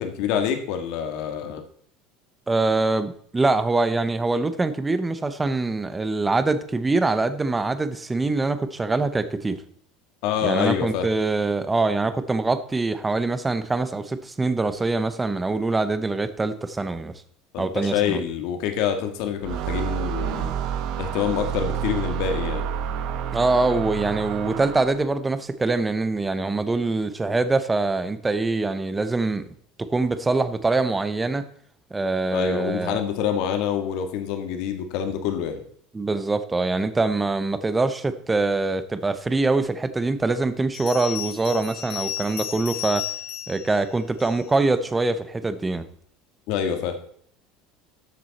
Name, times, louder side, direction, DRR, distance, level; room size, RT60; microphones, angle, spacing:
voice 1, 0.0-1.6 10.2-11.1 17.5-20.5 21.0-22.7 32.3-35.6 46.5-47.0, left 8 dB, 60° left, 6 dB, 1.8 m, -26 dB
voice 2, 2.5-9.6 10.4-17.1 17.6-18.2 23.3-29.4 29.8-31.4 31.9-33.0 35.9-43.1 43.5-45.9, right 3 dB, 10° right, 12 dB, 0.7 m, -24 dB
sound 1, 19.4-25.1, right 8 dB, 50° right, 0.9 m, -29 dB
Bell, 40.7-44.6, left 11 dB, 85° left, 3.9 m, -34 dB
13.0 x 7.4 x 4.1 m, 0.62 s
cardioid pair, 160°, 0 cm